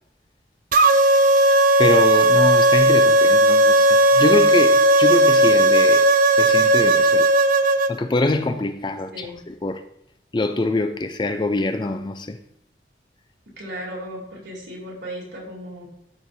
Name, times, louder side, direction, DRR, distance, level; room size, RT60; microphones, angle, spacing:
sound 1, 0.7-7.9, right 1 dB, 50° right, 0.4 m, -15 dB
voice 1, 1.8-6.1 6.4-7.3 7.9-9.8 10.3-12.4, left 2 dB, 25° left, 0.4 m, -24 dB
voice 2, 13.6-15.8, equal, 80° right, 3.0 m, -35 dB
12.5 x 4.6 x 2.7 m
head